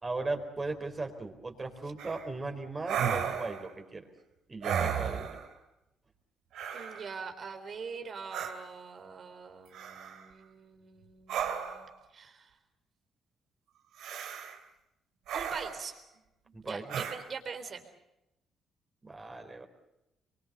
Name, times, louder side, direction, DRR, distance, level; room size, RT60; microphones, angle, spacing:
voice 1, 0.0-4.1 4.5-5.4 16.5-17.1 19.0-19.7, right 3 dB, 25° right, 4 dB, 4.2 m, -37 dB
sound 1, 2.0-2.2 2.8-3.7 4.6-5.5 6.5-7.1 8.3-8.5 9.7-10.2 11.3-11.9 14.0-14.6 15.3-15.9 16.9-17.2, right 8 dB, 80° right, 2.8 m, -34 dB
voice 2, 6.7-11.9 12.1-12.5 15.3-16.0 16.6-17.9, right 5 dB, 50° right, 7 dB, 3.8 m, -43 dB
25.0 x 23.5 x 6.8 m, 0.90 s
cardioid pair, 90°, 0 cm